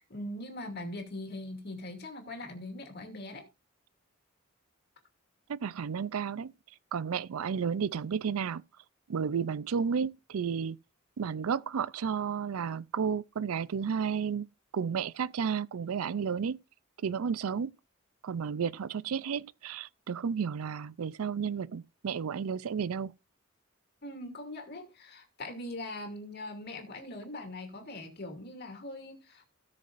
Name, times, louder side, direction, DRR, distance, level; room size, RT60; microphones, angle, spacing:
voice 1, 0.0-3.5 24.0-29.4, left 1 dB, 50° left, 2.5 m, -41 dB
voice 2, 5.5-6.5 6.9-8.6 9.1-10.8 11.2-14.5 14.7-16.6 17.0-17.7 18.2-23.1, right 6 dB, 85° right, 0.4 m, -32 dB
17.5 x 6.6 x 2.5 m
head